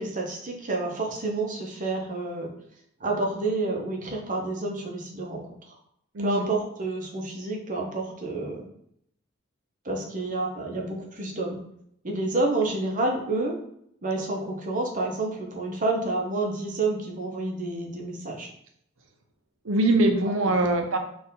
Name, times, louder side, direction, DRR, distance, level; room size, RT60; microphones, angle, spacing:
voice 1, 0.0-2.5 3.0-5.4 5.7-5.8 6.2-8.7 9.8-11.6 12.0-13.6 14.0-18.5, right 2 dB, 40° right, 1 dB, 0.8 m, -29 dB
voice 2, 6.1-6.4 19.6-21.0, right 2 dB, 65° right, 4 dB, 0.7 m, -22 dB
4.4 x 2.5 x 3.7 m, 0.72 s
head